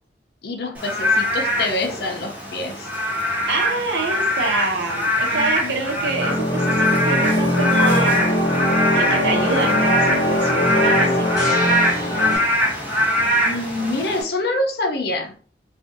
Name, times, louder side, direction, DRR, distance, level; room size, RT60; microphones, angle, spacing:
voice 1, 0.4-2.9 5.3-5.8 13.4-15.4, left 2 dB, 60° left, 3 dB, 0.6 m, -26 dB
Frog / Rain, 0.8-14.2, equal, 10° right, 0.6 m, -22 dB
voice 2, 3.5-8.6 9.0-11.4, right 2 dB, 75° right, 1 dB, 0.8 m, -26 dB
sound 1, 5.9-12.4, left 1 dB, 20° left, 0.8 m, -21 dB
2.6 x 2.4 x 2.6 m, 0.43 s
head